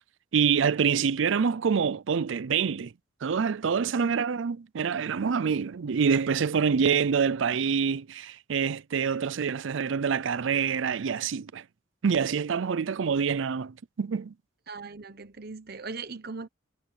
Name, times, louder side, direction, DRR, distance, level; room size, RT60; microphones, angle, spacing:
voice 1, 0.3-2.9 3.2-11.6 12.0-14.3, right 6 dB, 70° right, 0.5 m, -26 dB
voice 2, 4.0-4.3 14.7-16.5, right 4 dB, 50° right, 1.1 m, -39 dB
head